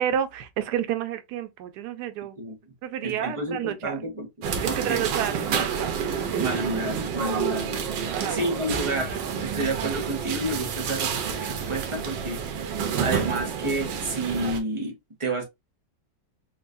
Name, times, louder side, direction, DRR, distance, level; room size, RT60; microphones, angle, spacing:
voice 1, 0.0-2.4 2.8-3.9 4.6-5.9 6.5-6.6 8.1-8.5, right 10 dB, 70° right, 1.1 m, -30 dB
voice 2, 3.0-4.3 4.6-5.2 6.4-7.7 8.0-15.4, right 2 dB, 25° right, 0.7 m, -30 dB
sound 1, 4.4-14.6, right 7 dB, 90° right, 1.5 m, -29 dB
4.6 x 2.4 x 2.5 m
omnidirectional pair, 1.9 m